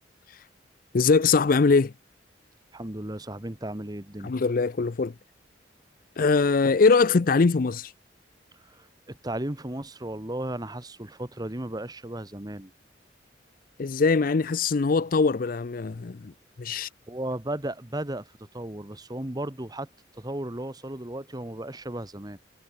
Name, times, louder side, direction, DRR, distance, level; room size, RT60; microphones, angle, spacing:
voice 1, 0.9-1.9 4.2-5.1 6.2-7.9 13.8-16.3 16.6-16.9, left 4 dB, 50° left, 0.5 m, -22 dB
voice 2, 2.7-4.3 8.6-12.7 17.1-22.4, right 1 dB, 20° right, 1.5 m, -35 dB
head